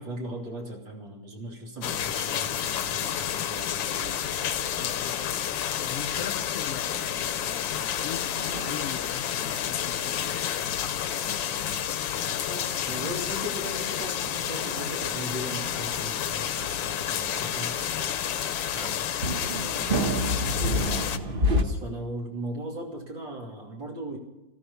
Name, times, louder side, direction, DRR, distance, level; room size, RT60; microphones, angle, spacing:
voice 1, 0.0-4.1 6.2-6.3 12.5-17.7 18.7-19.2 19.6-20.0 20.8-24.2, right 1 dB, 75° right, 3.5 m, -38 dB
sound 1, 1.8-21.2, left 10 dB, 80° left, 1.5 m, -30 dB
sound 2, 4.0-21.6, equal, 35° right, 1.0 m, -34 dB
voice 2, 4.7-12.9 18.8-19.0, left 9 dB, 60° left, 1.0 m, -41 dB
14.5 x 13.5 x 7.0 m
omnidirectional pair, 2.1 m